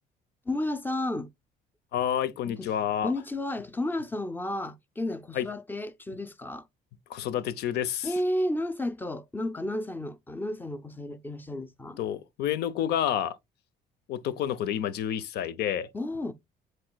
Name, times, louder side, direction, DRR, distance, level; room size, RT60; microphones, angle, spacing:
voice 1, 0.5-1.3 2.5-2.7 3.0-6.6 8.0-12.0 15.9-16.3, left 1 dB, 10° left, 0.6 m, -32 dB
voice 2, 1.9-3.1 5.3-5.5 7.1-8.1 12.0-13.4 14.1-15.9, left 10 dB, 75° left, 0.7 m, -29 dB
7.5 x 3.1 x 2.3 m
cardioid pair, 110°, 17 cm